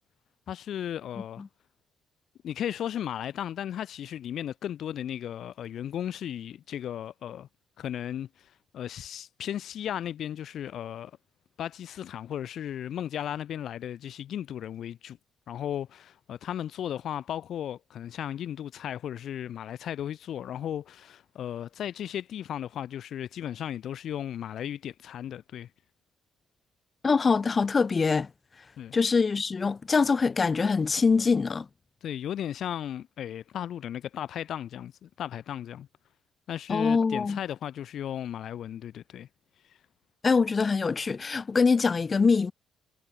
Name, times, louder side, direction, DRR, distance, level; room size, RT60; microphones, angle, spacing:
voice 1, 0.5-1.4 2.4-7.5 7.8-11.1 11.6-15.2 15.5-25.7 28.8-28.9 32.0-35.9 36.5-39.3 39.7-39.8, left 10 dB, 70° left, 1.4 m, -35 dB
voice 2, 27.0-28.3 28.9-31.7 36.7-37.4 40.2-42.5, left 4 dB, 35° left, 1.3 m, -24 dB
cardioid pair, 90°, 0 cm